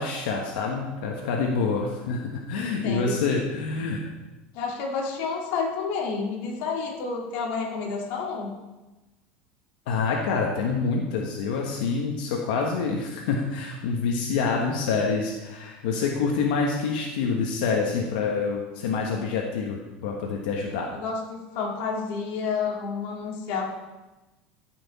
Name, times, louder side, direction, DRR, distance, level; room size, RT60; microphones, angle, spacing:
voice 1, 0.0-4.0 9.9-20.9, left 4 dB, 85° left, 0 dB, 1.4 m, -27 dB
voice 2, 2.6-3.1 4.5-8.5 20.9-23.6, left 5 dB, 55° left, -1 dB, 2.3 m, -30 dB
14.0 x 6.2 x 4.2 m, 1.1 s
cardioid pair, 170°, 5 cm